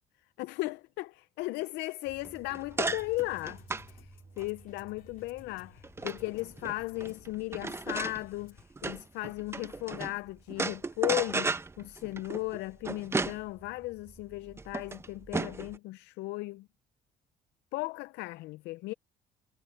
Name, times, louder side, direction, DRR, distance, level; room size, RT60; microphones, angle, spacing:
voice 1, 0.4-16.7 17.7-18.9, left 20 dB, 85° left, 0.5 m, -36 dB
sound 1, 2.1-10.2 10.5-15.8, right 3 dB, 15° right, 0.7 m, -36 dB
sound 2, 2.9-8.6, left 9 dB, 55° left, 3.4 m, -57 dB
cardioid pair, 110°, 17 cm